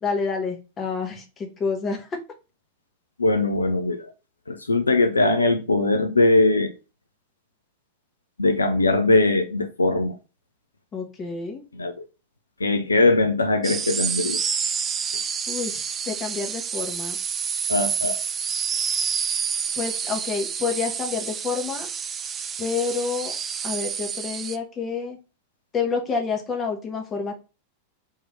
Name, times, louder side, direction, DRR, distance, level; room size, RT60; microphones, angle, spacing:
voice 1, 0.0-2.1 10.9-11.6 15.5-17.2 19.8-21.9 22.6-23.4 23.6-25.2 25.7-27.3, left 5 dB, 25° left, 1.0 m, -28 dB
voice 2, 3.2-4.0 4.5-6.7 8.4-10.1 11.7-11.9 12.6-14.4 17.7-18.2, left 2 dB, 80° left, 0.4 m, -20 dB
sound 1, 13.6-24.6, right 7 dB, 25° right, 0.3 m, -28 dB
3.6 x 3.0 x 3.1 m
figure-of-eight pair, 90°, 0 cm